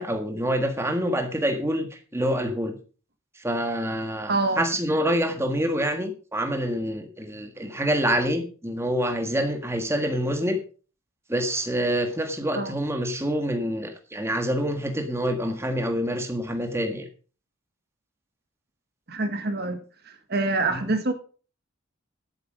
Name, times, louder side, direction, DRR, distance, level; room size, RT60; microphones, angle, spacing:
voice 1, 0.0-2.8 3.3-10.6 11.3-17.1 20.7-20.9, equal, 10° right, 1.6 m, -26 dB
voice 2, 4.3-4.6 12.5-12.7 19.1-21.1, right 2 dB, 50° right, 1.5 m, -26 dB
11.5 x 9.0 x 5.2 m
head